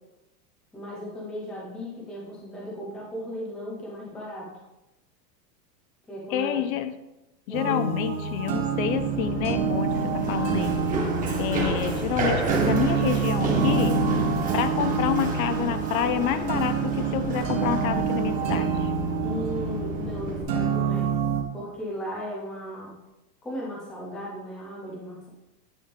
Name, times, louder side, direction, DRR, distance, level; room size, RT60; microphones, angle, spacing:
voice 1, 0.7-4.5 6.1-6.8 7.5-7.8 19.2-21.1 21.5-23.0 23.4-25.3, equal, ahead, -3 dB, 0.3 m, -36 dB
voice 2, 6.3-6.9 7.5-10.7 11.4-14.0 14.5-18.9, left 10 dB, 55° left, 11 dB, 0.6 m, -28 dB
sound 1, 7.5-21.4, right 5 dB, 80° right, 1.5 m, -27 dB
Run, 8.9-20.4, right 3 dB, 15° right, 1.3 m, -31 dB
9.3 x 5.2 x 3.4 m, 0.95 s
supercardioid pair, 150°, 49 cm